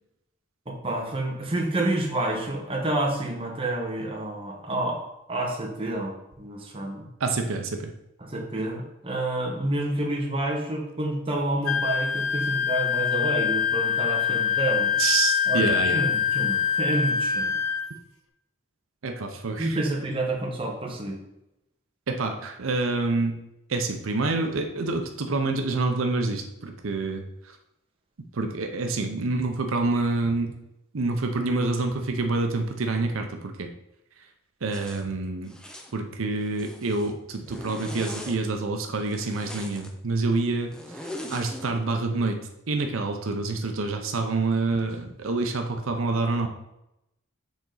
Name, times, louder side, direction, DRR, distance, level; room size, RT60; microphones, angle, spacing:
voice 1, 0.7-7.1 8.2-14.9 15.5-17.6 19.6-21.2, right 1 dB, 25° right, -1 dB, 1.1 m, -29 dB
voice 2, 7.2-7.9 15.0-16.0 19.0-19.8 22.1-23.4 23.7-27.2 28.3-30.5 30.9-33.7 34.6-35.5 35.9-42.4 42.7-46.5, right 3 dB, 85° right, 5 dB, 0.7 m, -27 dB
Wind instrument woodwind instrument, 11.7-17.9, left 7 dB, 85° left, 0.7 m, -25 dB
Zipper (clothing), 34.7-35.0 35.5-35.9 36.4-37.1 37.5-38.4 39.0-39.9 40.7-41.7, equal, 5° left, 0.5 m, -40 dB
7.1 x 4.1 x 3.9 m, 0.87 s
head